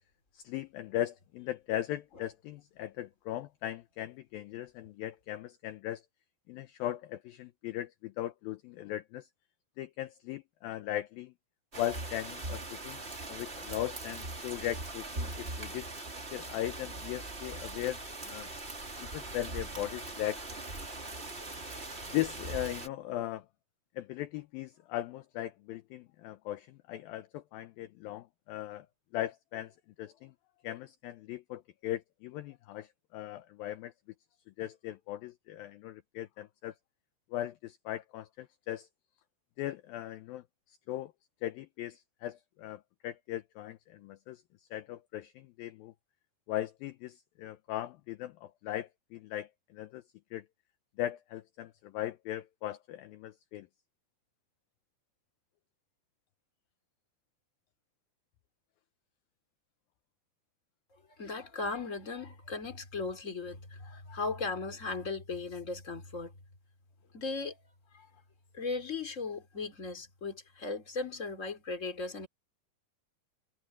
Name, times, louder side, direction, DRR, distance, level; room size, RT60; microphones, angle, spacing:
voice 1, 0.3-6.0 6.5-9.3 9.8-11.3 11.8-13.0 13.3-15.9 16.3-18.5 19.0-20.5 22.1-23.5 24.0-28.9 29.1-30.3 30.6-33.9 34.6-36.7 37.3-38.9 39.6-41.1 41.4-44.4 44.7-45.9 46.5-50.0 50.3-50.5 51.0-53.7, left 13 dB, 80° left, 2.2 m, -38 dB
sound 1, 11.7-22.9, right 2 dB, 20° right, 2.1 m, -41 dB
voice 2, 61.2-66.3 67.1-67.6 67.9-68.1 68.5-72.3, left 4 dB, 20° left, 3.1 m, -37 dB
omnidirectional pair, 4.9 m